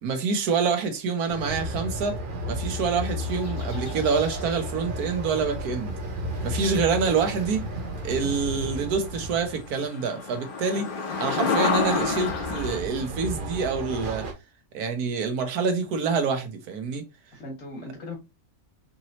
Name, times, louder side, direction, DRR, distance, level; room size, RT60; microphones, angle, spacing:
voice 1, 0.0-2.2 2.5-5.9 6.4-7.6 8.0-10.9 11.2-14.3 14.7-17.0, right 5 dB, 80° right, 1.4 m, -26 dB
Train, 1.3-9.8 11.6-14.3, equal, 40° right, 0.8 m, -33 dB
sound 1, 3.1-4.6 8.1-8.2 8.7-8.8 9.0-12.8, left 4 dB, 40° left, 0.9 m, -29 dB
voice 2, 10.7-11.2 17.3-18.2, left 2 dB, 70° left, 2.2 m, -40 dB
5.2 x 2.9 x 2.9 m
omnidirectional pair, 1.6 m